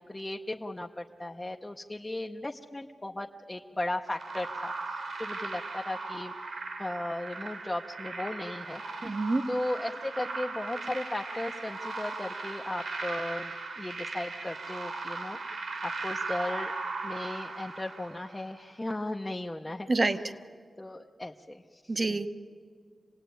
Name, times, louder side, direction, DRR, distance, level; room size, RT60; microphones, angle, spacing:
voice 1, 0.1-6.3 6.8-9.2 9.5-16.7 17.0-20.2 20.8-22.2, left 1 dB, 15° left, 2 dB, 0.8 m, -36 dB
sound 1, 4.1-18.5, right 3 dB, 70° right, 2.9 m, -38 dB
voice 2, 9.0-9.4 19.9-20.2 21.9-22.3, right 3 dB, 30° right, 10 dB, 0.9 m, -26 dB
27.0 x 19.0 x 9.3 m, 2.2 s
wide cardioid pair, 140°, 0 cm